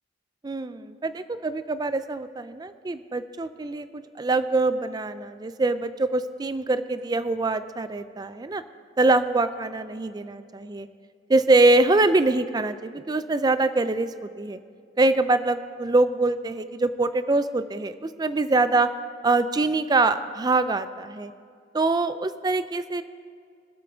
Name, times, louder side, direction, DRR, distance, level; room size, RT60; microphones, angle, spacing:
voice 1, 0.4-8.6 9.0-10.9 11.3-14.6 15.0-18.9 19.2-21.3 21.7-23.0, right 2 dB, 20° right, 12 dB, 0.4 m, -24 dB
24.0 x 8.2 x 3.5 m, 2.2 s
head